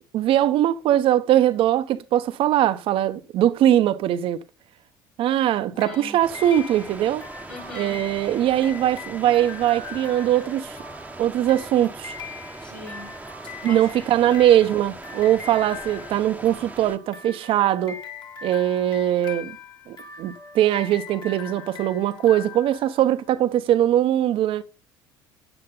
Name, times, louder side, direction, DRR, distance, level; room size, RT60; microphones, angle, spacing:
voice 1, 0.1-4.4 5.2-7.2 7.7-10.7 11.2-12.1 13.6-18.0 18.4-19.5 19.9-24.6, right 12 dB, 55° right, 0.9 m, -21 dB
voice 2, 5.8-6.2 7.5-8.0 12.6-13.2 13.7-14.0, left 1 dB, 85° left, 7.1 m, -40 dB
sound 1, 5.8-23.4, left 5 dB, 40° left, 2.5 m, -41 dB
sound 2, 6.2-17.0, right 2 dB, 15° right, 1.1 m, -40 dB
9.7 x 8.9 x 3.8 m
hypercardioid pair, 65°, 11 cm